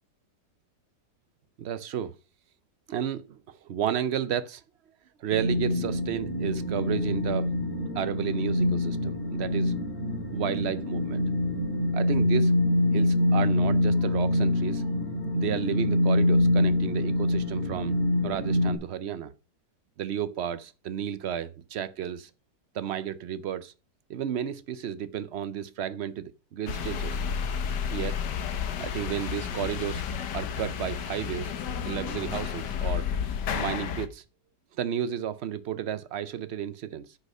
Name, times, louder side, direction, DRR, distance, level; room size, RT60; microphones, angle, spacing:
voice 1, 1.6-2.1 2.9-4.6 5.2-7.5 7.9-9.7 10.3-11.2 11.9-12.5 12.9-14.9 15.3-18.0 18.2-19.3 20.0-22.3 22.7-23.7 24.1-27.2 27.9-28.2 28.8-30.0 30.3-31.5 31.8-33.1 33.5-34.2 34.8-37.2, right 9 dB, 90° right, 0.5 m, -32 dB
sound 1, 5.3-18.7, left 1 dB, 30° left, 3.4 m, -25 dB
sound 2, 26.7-34.1, left 7 dB, 70° left, 1.6 m, -31 dB
9.7 x 6.6 x 5.3 m
omnidirectional pair, 1.9 m